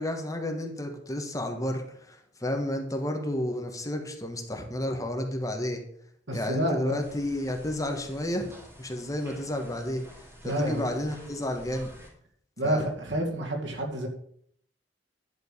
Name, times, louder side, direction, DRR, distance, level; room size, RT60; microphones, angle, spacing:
voice 1, 0.0-5.8 6.3-8.5 8.8-10.0 10.4-11.9 12.6-12.9, left 1 dB, 20° left, 3 dB, 1.6 m, -31 dB
voice 2, 6.3-7.0 10.4-11.0 12.6-14.1, right 1 dB, 85° right, 1 dB, 2.3 m, -29 dB
sound 1, 7.0-12.1, equal, 15° right, 2.7 m, -49 dB
11.0 x 5.2 x 6.8 m, 0.64 s
head